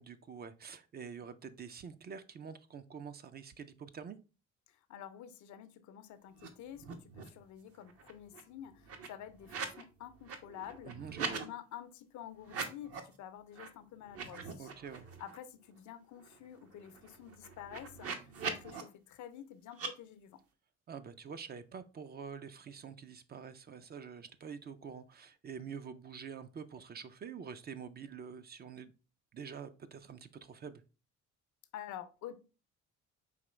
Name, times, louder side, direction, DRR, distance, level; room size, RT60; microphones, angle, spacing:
voice 1, 0.0-4.2 10.9-11.4 14.6-15.1 20.9-28.9 29.3-30.8, right 6 dB, 35° right, 0.4 m, -47 dB
voice 2, 4.7-11.0 11.3-14.7 15.2-20.4 31.7-32.3, left 10 dB, 75° left, 0.6 m, -49 dB
sound 1, 6.3-6.5 6.7-7.4 7.8-9.8 10.1-11.5 12.4-13.1 13.5-13.7 14.0-15.4 15.8-15.9 16.1-18.8 19.7-19.9, right 5 dB, 55° right, 0.8 m, -42 dB
4.9 x 2.9 x 3.1 m
cardioid pair, 105°, 29 cm